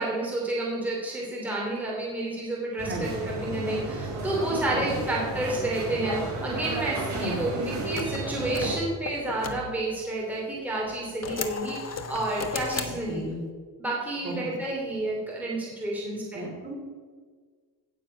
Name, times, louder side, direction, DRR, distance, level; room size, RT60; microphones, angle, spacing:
voice 1, 0.0-13.2 13.8-16.4, right 2 dB, 5° right, -4 dB, 3.0 m, -30 dB
voice 2, 2.8-3.3 4.9-5.1 7.2-7.4 13.1-13.4 14.2-14.4 16.1-16.7, right 1 dB, 25° right, -1 dB, 3.7 m, -35 dB
sound 1, 2.8-8.7, right 3 dB, 40° right, 4.8 m, -33 dB
sound 2, 7.1-10.4 10.9-13.4, left 5 dB, 40° left, 1.3 m, -36 dB
17.0 x 7.4 x 5.6 m, 1.6 s
cardioid pair, 130°, 42 cm